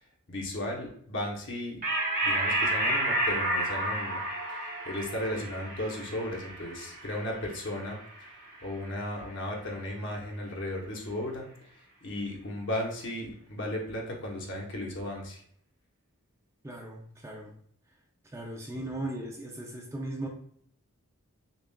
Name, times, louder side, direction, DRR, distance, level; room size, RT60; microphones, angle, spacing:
voice 1, 0.3-1.8 2.2-4.2 4.5-8.3 8.6-11.5 11.7-15.4 18.6-18.8, left 1 dB, 55° left, -1 dB, 1.0 m, -35 dB
sound 1, 1.8-8.7, right 1 dB, 35° right, 0.8 m, -31 dB
voice 2, 16.6-17.5 18.3-20.3, right 1 dB, 15° right, 0 dB, 0.4 m, -37 dB
6.9 x 2.4 x 2.2 m, 0.64 s
head